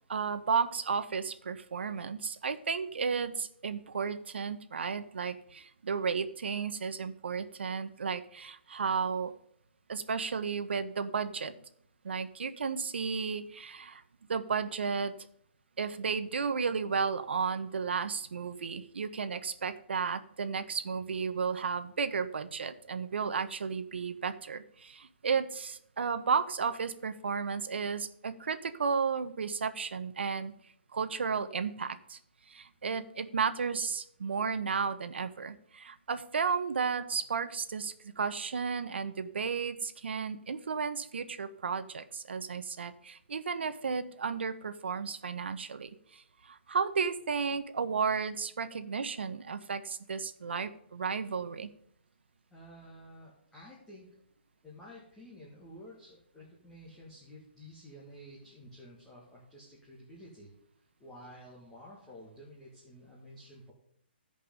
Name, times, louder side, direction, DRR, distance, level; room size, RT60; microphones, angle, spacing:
voice 1, 0.1-9.3 9.9-11.5 12.0-14.0 14.3-15.1 15.8-30.5 30.9-32.2 32.5-51.7, right 5 dB, 75° right, 11 dB, 1.0 m, -33 dB
voice 2, 52.5-54.2 54.6-60.5 61.0-63.7, equal, 5° left, -5 dB, 1.7 m, -51 dB
15.5 x 5.3 x 5.2 m, 0.67 s
hypercardioid pair, 170°, 6 cm